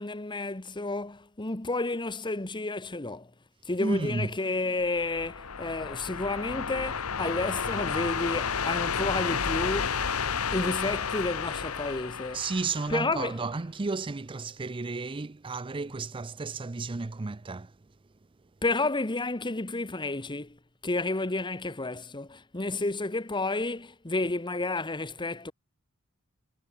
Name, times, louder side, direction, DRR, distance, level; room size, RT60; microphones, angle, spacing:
voice 1, 0.0-3.3 3.6-12.4 12.9-13.4 18.6-20.6 20.8-25.5, left 2 dB, 20° left, 1.3 m, -31 dB
voice 2, 3.8-4.3 12.3-17.7, right 3 dB, 25° right, 0.5 m, -32 dB
sound 1, 4.8-13.3, left 6 dB, 85° left, 1.3 m, -31 dB
head